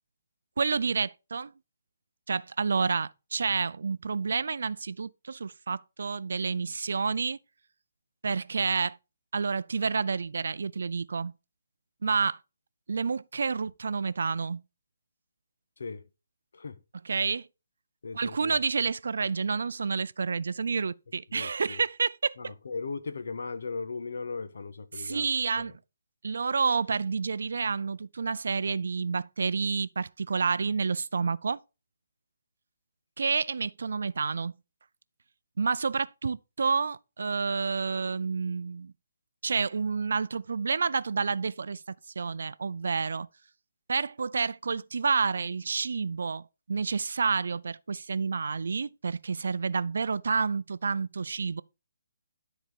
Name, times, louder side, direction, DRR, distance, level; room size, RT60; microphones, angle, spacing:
voice 1, 0.6-1.5 2.3-7.4 8.2-9.0 9.3-11.3 12.0-12.4 12.9-14.6 17.0-17.5 18.1-22.5 24.9-25.7 26.2-31.6 33.2-34.5 35.6-38.9 39.4-43.3 43.9-51.6, right 5 dB, 70° right, 0.5 m, -29 dB
voice 2, 18.0-18.6 21.3-21.8 22.4-25.3 25.6-25.7, left 4 dB, 70° left, 1.3 m, -37 dB
12.5 x 4.4 x 5.3 m
hypercardioid pair, 165°, 0 cm